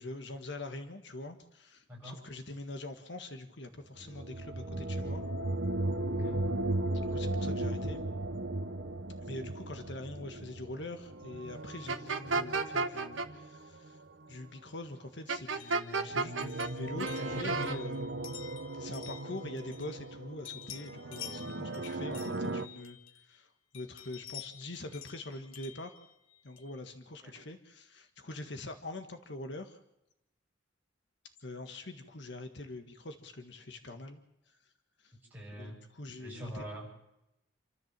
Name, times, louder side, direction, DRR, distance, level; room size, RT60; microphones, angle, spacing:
voice 1, 0.0-5.2 7.1-8.0 9.2-14.0 14.3-25.9 26.4-29.8 31.4-34.2 34.5-34.6 35.0-35.1 35.5-36.6, left 2 dB, 60° left, 7 dB, 1.6 m, -44 dB
sound 1, 4.0-14.7 15.9-22.7, right 2 dB, 60° right, 1.2 m, -37 dB
voice 2, 6.1-6.5 27.2-27.3 35.3-35.8 36.1-36.9, equal, 10° right, -4 dB, 7.9 m, -44 dB
sound 2, 11.9-13.3 15.3-16.7 17.0-17.8, right 4 dB, 75° right, 1.6 m, -32 dB
sound 3, 15.5-20.2 20.4-23.4 23.7-26.8, left 10 dB, 90° left, 1.9 m, -50 dB
27.5 x 13.5 x 7.6 m, 0.86 s
head